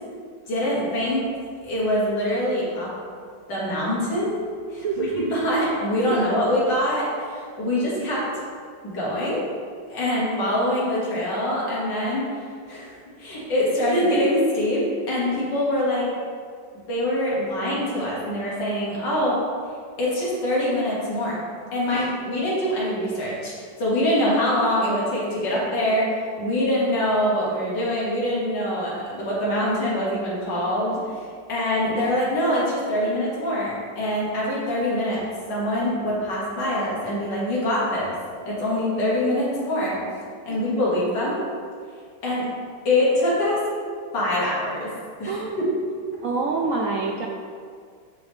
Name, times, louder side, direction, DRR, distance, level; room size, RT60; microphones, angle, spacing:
voice 1, 0.5-1.3 1.6-2.9 3.5-4.4 4.7-8.4 8.8-9.4 9.9-12.3 12.7-16.1 16.9-19.4 20.0-21.4 21.7-35.2 35.5-38.1 38.5-40.0 40.4-41.4 42.2-42.5 42.9-43.6 44.1-44.9 45.2-45.4, left 1 dB, 85° left, -6 dB, 2.3 m, -24 dB
voice 2, 4.8-5.2 6.1-6.2 21.9-22.1 40.5-40.6 45.3-45.6 46.2-47.3, right 4 dB, 70° right, -1 dB, 0.8 m, -27 dB
9.5 x 3.6 x 3.2 m, 2.1 s
omnidirectional pair, 1.9 m